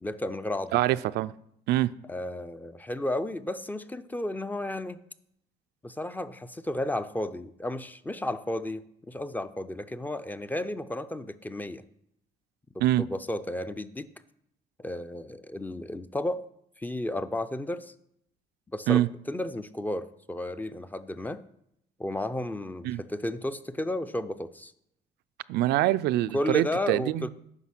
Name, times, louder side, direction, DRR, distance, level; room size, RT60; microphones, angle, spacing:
voice 1, 0.0-0.8 2.1-5.0 5.8-8.8 9.1-11.8 12.7-14.1 14.8-16.5 16.8-17.9 18.7-19.0 19.3-21.4 22.0-24.7 26.3-27.3, left 1 dB, 10° left, 12 dB, 0.4 m, -33 dB
voice 2, 0.7-1.3 1.7-1.9 12.8-13.0 18.9-19.1 22.8-23.0 25.5-27.3, right 14 dB, 80° right, 13 dB, 0.4 m, -24 dB
9.8 x 5.5 x 6.0 m, 0.74 s
cardioid pair, 110°, 17 cm